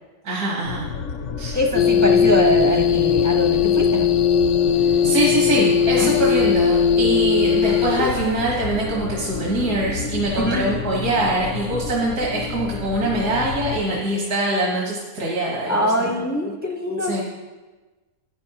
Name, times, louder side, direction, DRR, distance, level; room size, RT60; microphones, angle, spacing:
voice 1, 0.2-0.9 1.4-1.6 4.8-16.1 17.1-17.2, right 1 dB, 70° right, -4 dB, 2.0 m, -23 dB
sound 1, 0.6-13.8, left 5 dB, 60° left, 0.8 m, -31 dB
voice 2, 1.5-4.1 6.0-6.1 10.3-10.7 15.7-17.2, equal, 15° left, 1 dB, 0.5 m, -23 dB
sound 2, 1.7-8.3, left 7 dB, 80° left, 1.2 m, -18 dB
15.0 x 9.6 x 2.9 m, 1.2 s
omnidirectional pair, 1.6 m